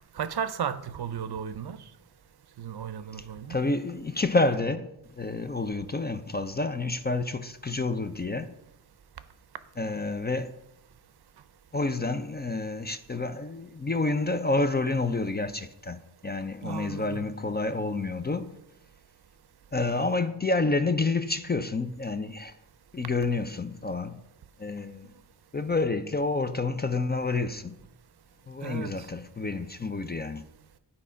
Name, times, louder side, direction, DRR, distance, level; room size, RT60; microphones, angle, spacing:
voice 1, 0.2-1.8 2.6-3.6 16.6-17.3 28.6-29.1, right 8 dB, 60° right, 0.6 m, -34 dB
voice 2, 3.5-4.9 5.2-8.5 9.8-10.5 11.7-18.5 19.7-22.6 22.9-24.2 24.6-25.1 25.5-27.8 28.5-30.4, left 3 dB, 25° left, 0.4 m, -29 dB
11.0 x 4.2 x 5.0 m
wide cardioid pair, 80°, 45 cm